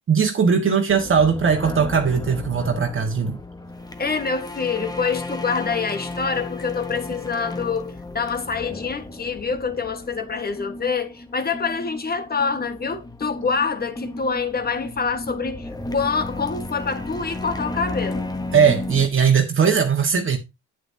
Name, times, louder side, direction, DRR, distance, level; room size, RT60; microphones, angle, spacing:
voice 1, 0.1-3.4 18.5-20.4, right 6 dB, 45° right, 1.5 m, -19 dB
sound 1, 0.9-19.1, left 2 dB, 15° left, 1.2 m, -34 dB
voice 2, 4.0-18.3, left 5 dB, 30° left, 1.5 m, -26 dB
9.1 x 8.3 x 2.8 m
cardioid pair, 90°, 30 cm